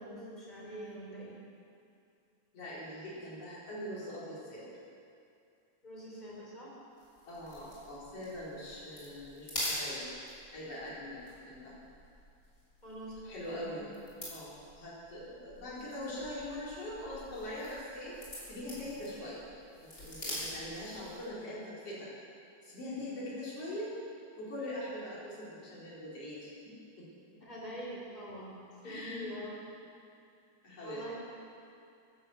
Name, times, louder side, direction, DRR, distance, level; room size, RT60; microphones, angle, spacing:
voice 1, 0.0-1.3 5.8-6.7 12.8-14.0 23.0-23.3 27.4-29.6 30.8-31.1, equal, 15° left, -5 dB, 4.2 m, -45 dB
voice 2, 2.5-4.6 7.3-10.1 10.5-11.2 11.4-11.7 13.2-13.9 14.3-18.2 18.5-19.4 20.0-22.1 22.6-24.0 24.4-27.0 28.8-29.3 30.6-31.0, left 1 dB, 55° left, -7 dB, 5.2 m, -42 dB
sound 1, 7.0-21.3, equal, 30° left, 5.3 m, -45 dB
13.5 x 11.5 x 7.9 m, 2.5 s
omnidirectional pair, 3.4 m